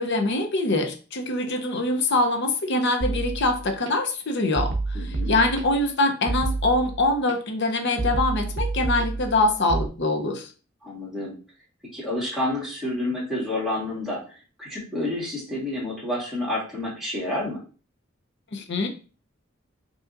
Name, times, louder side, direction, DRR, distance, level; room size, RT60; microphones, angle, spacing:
voice 1, 0.0-10.5 18.5-18.9, left 2 dB, 60° left, 5 dB, 0.7 m, -24 dB
sound 1, 3.0-3.9 4.6-5.9 6.3-7.3 8.0-9.9, right 3 dB, 60° right, 0.6 m, -29 dB
voice 2, 4.9-5.3 10.8-11.4 11.9-17.6, left 1 dB, ahead, -7 dB, 2.0 m, -29 dB
5.2 x 2.8 x 2.5 m, 0.37 s
head